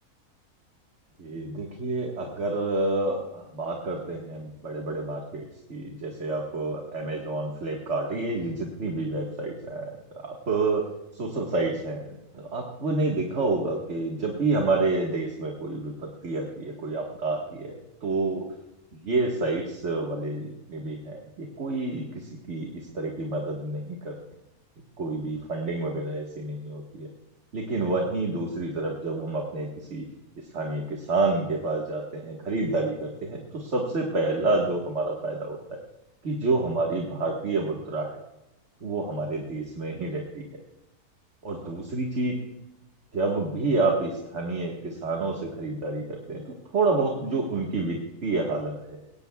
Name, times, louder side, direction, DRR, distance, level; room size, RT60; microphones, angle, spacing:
voice 1, 1.2-9.9 10.5-10.8 11.1-17.7 18.0-18.5 18.9-24.2 25.0-27.1 27.5-30.1 30.5-35.8 36.2-38.2 38.8-40.5 41.4-42.4 43.1-48.7, right 3 dB, 50° right, 0 dB, 1.9 m, -29 dB
20.5 x 17.5 x 2.3 m, 0.96 s
omnidirectional pair, 1.6 m